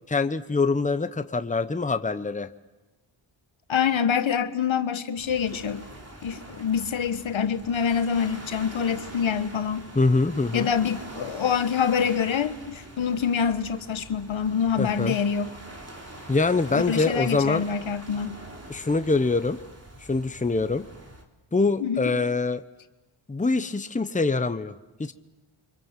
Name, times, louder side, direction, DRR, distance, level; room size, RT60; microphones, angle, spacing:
voice 1, 0.1-2.5 9.9-10.7 14.8-15.1 16.3-17.6 18.7-19.6 20.1-20.8 21.5-22.6 23.3-24.7 25.0-25.1, left 3 dB, 15° left, 1.0 m, -24 dB
voice 2, 3.7-5.8 6.2-9.8 10.5-15.5 16.7-18.4 21.8-22.1, left 7 dB, 70° left, 1.5 m, -26 dB
sound 1, 5.2-21.2, right 1 dB, 30° right, 3.6 m, -44 dB
29.5 x 25.0 x 7.5 m
cardioid pair, 70°, 49 cm